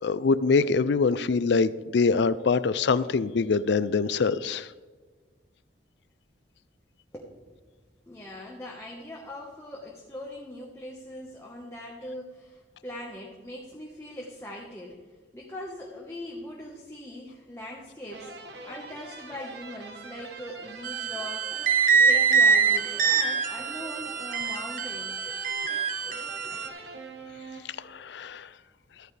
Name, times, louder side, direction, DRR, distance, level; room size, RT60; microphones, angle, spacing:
voice 1, 0.0-4.7 27.8-28.5, left 4 dB, 70° left, 17 dB, 0.4 m, -24 dB
voice 2, 7.1-7.5 8.1-18.3 18.6-25.2, left 1 dB, 15° left, -2 dB, 1.2 m, -41 dB
sound 1, 18.1-28.0, right 3 dB, 65° right, 1.2 m, -44 dB
sound 2, 20.8-26.7, right 6 dB, 45° right, 0.9 m, -24 dB
13.5 x 9.3 x 3.3 m, 1.4 s
head